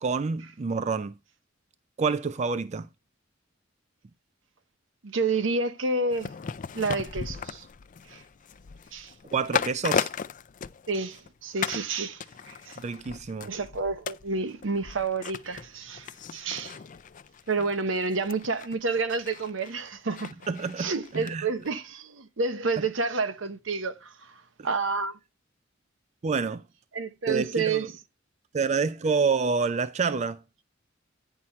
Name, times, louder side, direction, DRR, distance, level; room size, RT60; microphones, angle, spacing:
voice 1, 0.0-1.1 2.0-2.9 9.3-10.1 12.8-13.5 20.5-21.5 26.2-26.6 27.3-27.9 28.5-30.4, right 5 dB, 35° right, 0.4 m, -28 dB
voice 2, 5.0-6.3 6.7-7.6 8.1-8.2 8.9-9.1 10.9-12.2 12.5-12.8 13.4-16.8 17.5-20.3 20.8-24.3 24.6-25.2 26.9-27.9, right 4 dB, 75° right, 0.9 m, -29 dB
sound 1, 6.1-11.3 11.6-11.9 12.2-21.3 21.6-21.7, left 7 dB, 40° left, 0.4 m, -36 dB
9.7 x 6.0 x 4.3 m
head